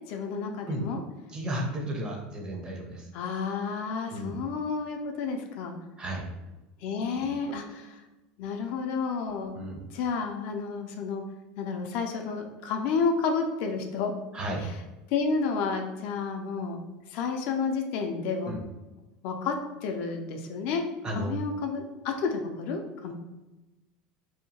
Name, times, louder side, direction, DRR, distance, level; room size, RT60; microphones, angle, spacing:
voice 1, 0.1-1.0 3.1-5.8 6.8-8.0 8.4-9.5 9.9-11.2 11.6-14.1 14.6-14.8 15.1-16.8 17.1-18.5 19.2-20.8 21.1-23.1, left 5 dB, 60° left, 4 dB, 0.4 m, -31 dB
voice 2, 1.3-3.1 4.1-4.3 6.0-6.2 7.1-7.3 9.6-9.8 14.3-14.7 18.4-18.6 21.0-21.3, right 1 dB, 25° right, 1 dB, 0.5 m, -33 dB
2.7 x 2.2 x 2.7 m, 1.1 s
supercardioid pair, 130°, 4 cm